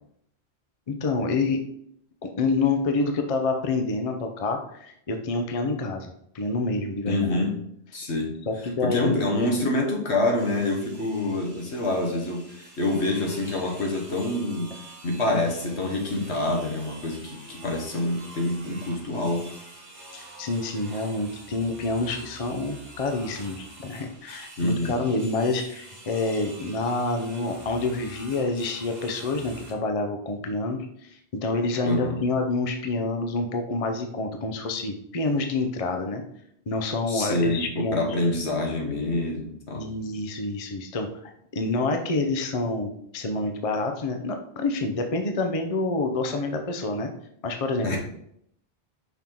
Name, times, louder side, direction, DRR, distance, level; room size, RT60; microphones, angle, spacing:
voice 1, 0.9-1.6 2.2-7.4 8.5-9.2 20.1-36.2 36.7-38.1 39.7-41.1 41.5-47.1 47.4-48.0, left 3 dB, 35° left, 5 dB, 0.7 m, -27 dB
voice 2, 7.1-7.6 7.9-8.4 8.8-14.7 15.0-19.5 24.6-25.0 31.8-32.2 37.1-39.9 47.8-48.0, left 2 dB, 80° left, 0 dB, 1.6 m, -26 dB
sound 1, 10.4-29.7, right 2 dB, 45° right, 1.7 m, -46 dB
5.7 x 4.4 x 3.8 m, 0.71 s
omnidirectional pair, 1.1 m